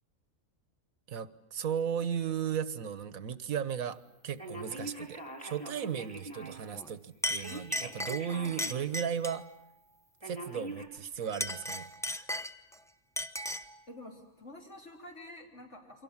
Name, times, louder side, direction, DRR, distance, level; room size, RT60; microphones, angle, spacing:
voice 1, 1.1-9.4 10.2-11.9, right 8 dB, 80° right, 14 dB, 1.6 m, -35 dB
Telephone, 4.4-6.7 7.4-8.9 9.3-9.4 10.2-10.9, right 1 dB, 20° left, 5.8 m, -43 dB
Chink clink, 6.7-6.9 7.2-9.5 11.2-12.8 13.2-13.8, equal, 5° left, 0.8 m, -36 dB
voice 2, 13.9-16.0, left 1 dB, 55° left, -1 dB, 3.8 m, -48 dB
29.0 x 24.0 x 7.3 m, 0.84 s
omnidirectional pair, 1.4 m